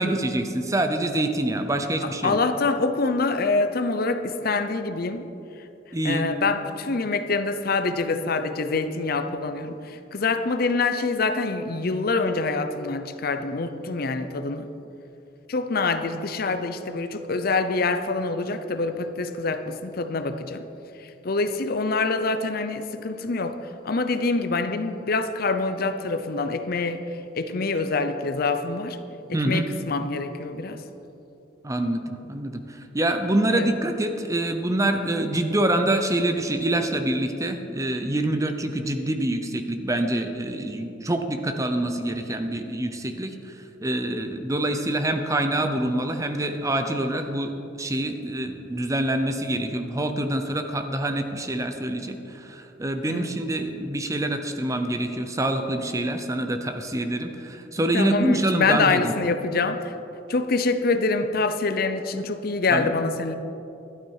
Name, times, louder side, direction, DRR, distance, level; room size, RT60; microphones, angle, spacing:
voice 1, 0.0-2.4 5.9-6.3 29.3-29.7 31.6-43.6 43.8-59.1 62.7-62.9, right 1 dB, 15° right, 7 dB, 0.7 m, -26 dB
voice 2, 2.2-5.3 6.0-14.7 15.5-20.6 21.0-23.6 23.8-27.0 27.4-29.0 29.3-30.8 33.5-33.7 53.1-53.3 57.9-59.9 60.3-63.3, left 3 dB, 50° left, 9 dB, 0.6 m, -25 dB
12.5 x 11.5 x 4.8 m, 2.8 s
head